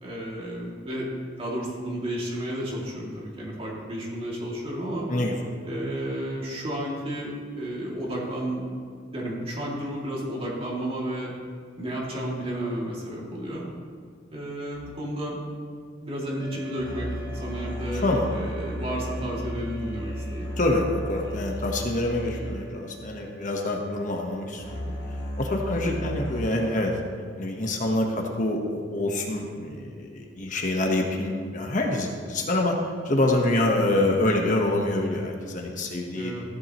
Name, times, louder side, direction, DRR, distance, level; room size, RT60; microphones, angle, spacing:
voice 1, 0.0-1.1 1.4-5.1 5.6-8.7 9.1-11.3 11.8-13.7 14.3-15.4 16.0-20.5 25.8-26.1 36.1-36.4, right 1 dB, 30° right, -4 dB, 2.4 m, -32 dB
sound 1, 14.7-14.9 16.4-26.4, equal, 25° left, 2.8 m, -35 dB
voice 2, 18.0-18.4 20.6-24.9 25.4-26.9 27.4-36.3, left 1 dB, 45° left, 1 dB, 1.2 m, -26 dB
14.5 x 11.0 x 3.0 m, 2.1 s
head